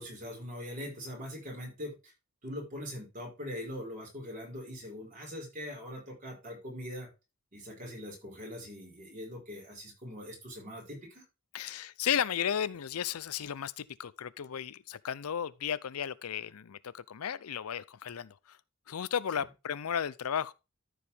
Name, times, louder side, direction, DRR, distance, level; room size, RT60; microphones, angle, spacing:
voice 1, 0.0-1.9 2.4-7.1 7.5-11.2, left 1 dB, 35° right, 4.7 m, -42 dB
voice 2, 11.5-18.6 18.9-20.5, left 8 dB, 85° left, 0.5 m, -34 dB
13.5 x 4.9 x 3.4 m
head